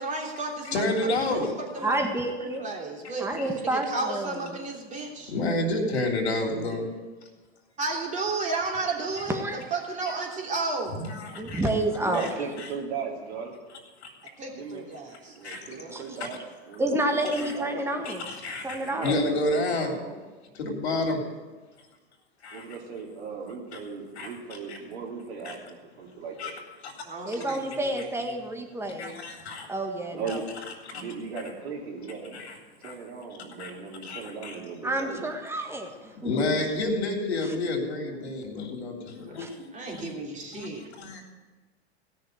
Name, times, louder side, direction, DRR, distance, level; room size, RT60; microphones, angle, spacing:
voice 1, 0.0-0.8 1.2-1.9 2.6-5.3 7.8-9.4 9.7-11.0 14.4-16.0 27.0-28.0 28.3-28.4 38.0-38.2 39.7-40.8, right 3 dB, 25° right, -1 dB, 3.1 m, -33 dB
voice 2, 0.7-1.5 3.4-3.5 5.3-6.9 11.0-11.6 12.1-12.3 14.0-14.1 15.4-15.6 17.4-17.5 18.0-19.9 20.5-21.2 22.4-22.6 24.2-24.3 24.7-24.8 25.4-25.6 26.4-26.5 26.8-26.9 27.5-27.6 29.0-29.7 30.9-31.0 32.3-32.5 32.8-32.9 33.6-33.7 34.0-34.6 36.2-40.1 40.5-40.7 41.0-41.2, left 2 dB, 85° left, 1 dB, 3.3 m, -29 dB
voice 3, 1.8-2.6 3.2-4.6 9.3-9.6 11.3-12.3 14.4-14.5 15.9-16.0 16.8-18.3 18.6-19.2 27.3-29.2 29.7-30.4 34.8-36.3 37.4-37.5 39.4-39.5, right 1 dB, 10° right, 3 dB, 1.7 m, -29 dB
voice 4, 12.0-13.5 14.5-14.8 15.3-16.4 16.7-17.7 18.8-20.2 22.5-26.5 30.1-30.4 30.9-32.4 32.8-35.3, right 5 dB, 80° right, 0 dB, 3.3 m, -37 dB
16.5 x 6.5 x 8.0 m, 1.3 s
hypercardioid pair, 110°, 31 cm